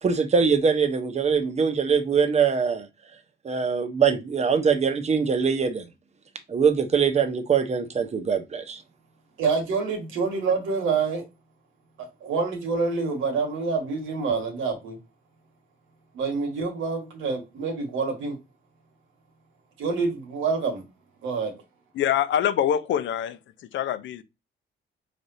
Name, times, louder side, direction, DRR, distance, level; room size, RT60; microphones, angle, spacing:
voice 1, 0.0-2.9 3.4-5.8 6.5-8.8, right 6 dB, 35° right, 0.9 m, -23 dB
voice 2, 9.4-11.2 12.0-15.0 16.1-18.3 19.8-20.8 21.2-21.5, right 4 dB, 85° right, 1.7 m, -27 dB
voice 3, 21.9-23.4 23.7-24.2, left 10 dB, 70° left, 0.6 m, -24 dB
5.0 x 3.4 x 2.7 m
cardioid pair, 90°, 20 cm